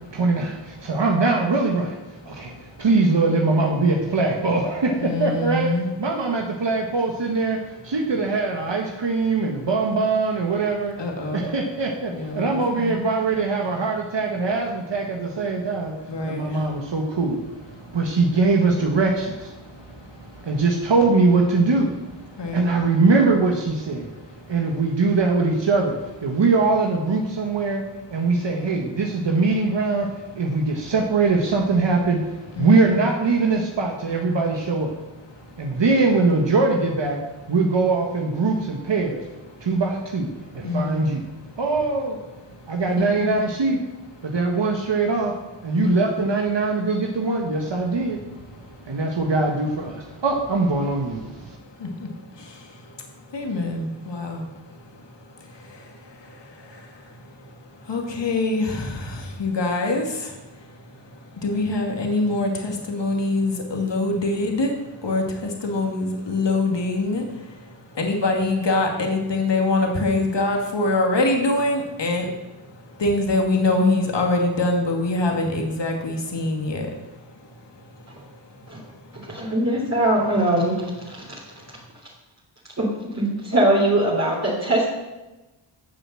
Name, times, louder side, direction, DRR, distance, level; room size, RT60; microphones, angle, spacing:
voice 1, 0.1-2.0 2.2-2.5 2.8-11.0 11.3-15.9 16.2-24.1 24.5-27.8 28.1-35.0 35.6-37.2 37.5-39.3 39.6-40.3 40.5-41.2 41.6-42.2 42.7-43.8 44.2-45.4 45.6-48.3 48.9-51.6, right 3 dB, 60° right, 1 dB, 1.7 m, -22 dB
voice 2, 2.3-2.8 5.0-5.9 11.0-11.5 12.1-13.0 16.1-16.7 17.7-18.0 19.6-20.5 22.3-22.7 24.1-24.6 32.5-33.1 35.3-35.8 39.5-39.7 40.6-41.0 41.5-41.6 42.5-43.4 44.2-44.3 45.8-46.1 48.5-49.0 50.2-50.3 51.5-79.5 81.3-81.7, left 2 dB, 60° left, 2 dB, 2.4 m, -26 dB
voice 3, 79.3-80.7 81.1-81.2 82.8-84.9, right 1 dB, 30° right, -4 dB, 3.2 m, -21 dB
12.5 x 7.1 x 7.6 m, 1.1 s
wide cardioid pair, 80°, 48 cm